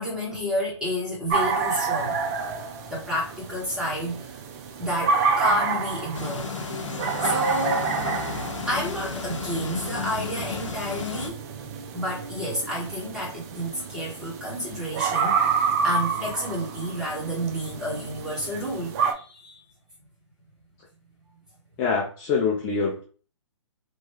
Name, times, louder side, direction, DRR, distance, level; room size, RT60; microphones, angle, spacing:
voice 1, 0.0-2.2 2.9-4.3 4.8-6.5 7.2-7.9 8.7-11.4 11.9-19.6, equal, 5° right, 1.2 m, -30 dB
sound 1, 1.3-19.1, right 5 dB, 30° right, 0.4 m, -29 dB
sound 2, 6.1-11.3, left 4 dB, 75° left, 0.7 m, -33 dB
voice 2, 21.8-23.0, left 5 dB, 25° left, 0.5 m, -25 dB
3.0 x 2.2 x 3.0 m
hypercardioid pair, 130°, 16 cm